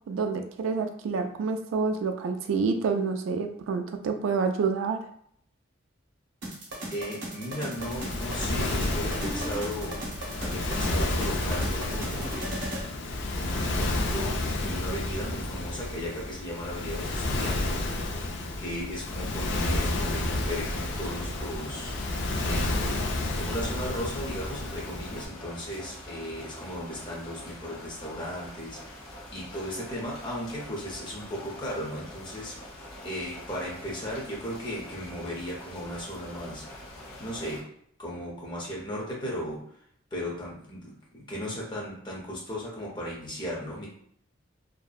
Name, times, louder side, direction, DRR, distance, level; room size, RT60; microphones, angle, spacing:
voice 1, 0.1-5.0, right 5 dB, 75° right, 7 dB, 0.3 m, -28 dB
sound 1, 6.4-12.9, right 1 dB, 55° right, 0.7 m, -37 dB
voice 2, 6.9-10.1 10.4-12.4 13.3-17.9 18.6-22.0 22.4-23.0 23.3-32.8 33.0-36.9 37.2-37.7 38.0-39.6 40.1-43.9, equal, 25° left, -4 dB, 0.7 m, -36 dB
Waves surf, 7.8-25.3, left 2 dB, 60° left, 0.3 m, -31 dB
sound 2, 20.3-37.6, left 1 dB, 90° left, 0.7 m, -44 dB
2.6 x 2.1 x 2.3 m, 0.67 s
head